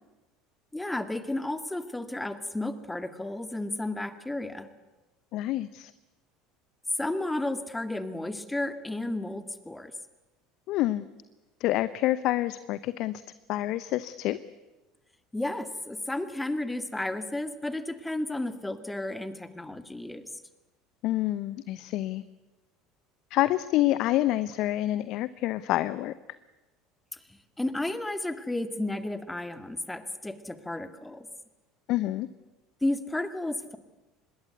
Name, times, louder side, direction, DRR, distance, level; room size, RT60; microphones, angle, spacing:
voice 1, 0.7-4.7 7.0-9.9 15.3-20.3 27.1-27.2 27.6-31.3 32.8-33.8, left 1 dB, 10° left, 10 dB, 2.1 m, -32 dB
voice 2, 5.3-5.9 10.7-11.0 11.6-13.2 13.5-14.4 21.0-22.2 23.3-26.1 31.9-32.3, left 15 dB, 55° left, 16 dB, 0.8 m, -27 dB
25.5 x 21.0 x 8.2 m, 1.1 s
hypercardioid pair, 70°, 0 cm